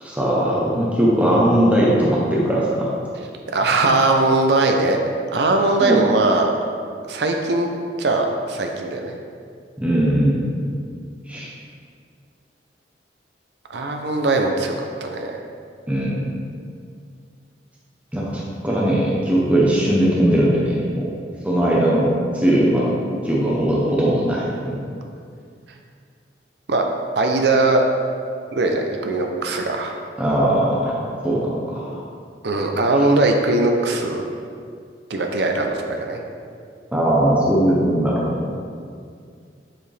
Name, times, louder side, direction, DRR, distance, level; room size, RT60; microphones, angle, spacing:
voice 1, 0.0-2.9 5.8-6.0 9.8-10.6 11.3-11.5 15.9-16.3 18.1-21.1 21.4-22.9 23.2-24.9 30.2-32.0 36.9-38.6, right 1 dB, 10° right, -5 dB, 0.8 m, -19 dB
voice 2, 3.5-5.0 5.3-6.5 7.1-7.7 8.0-9.2 13.7-14.7 15.0-15.4 26.7-26.8 27.2-27.8 28.5-29.9 32.4-34.2 35.1-36.2, right 2 dB, 70° right, 3 dB, 0.6 m, -20 dB
7.4 x 4.8 x 3.3 m, 2.2 s
head